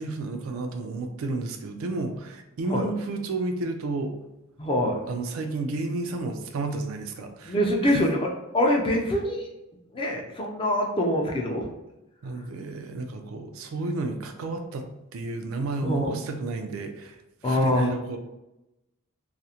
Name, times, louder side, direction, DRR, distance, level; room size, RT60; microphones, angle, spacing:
voice 1, 0.0-4.1 5.1-7.6 7.8-8.1 12.2-18.2, right 3 dB, 75° right, 5 dB, 0.3 m, -32 dB
voice 2, 4.6-5.0 7.5-8.3 8.5-9.5 9.9-11.7 15.8-16.1 17.4-17.8, left 1 dB, 25° left, 1 dB, 0.3 m, -24 dB
2.4 x 2.0 x 2.8 m, 0.93 s
head